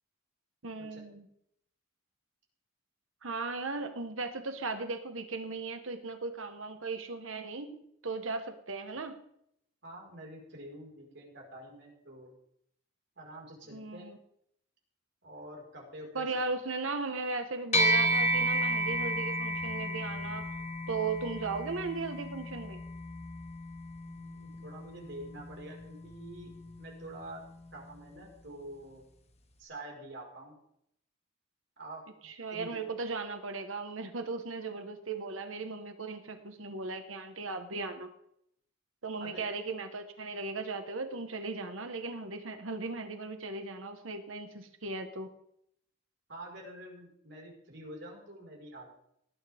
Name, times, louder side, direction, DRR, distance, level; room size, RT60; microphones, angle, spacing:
voice 1, 0.6-1.3 3.2-9.2 13.7-14.2 16.1-20.5 20.9-22.8 32.2-38.1 39.0-45.3, right 3 dB, 85° right, 7 dB, 1.4 m, -37 dB
voice 2, 9.8-12.3 13.2-14.1 15.2-16.3 24.0-26.5 26.8-27.4 27.7-29.0 29.6-30.6 31.8-32.8 39.2-39.4 46.3-48.9, right 1 dB, 60° right, -1 dB, 5.0 m, -47 dB
sound 1, 17.7-27.3, right 1 dB, 30° left, 1.2 m, -33 dB
19.0 x 9.5 x 3.6 m, 0.71 s
head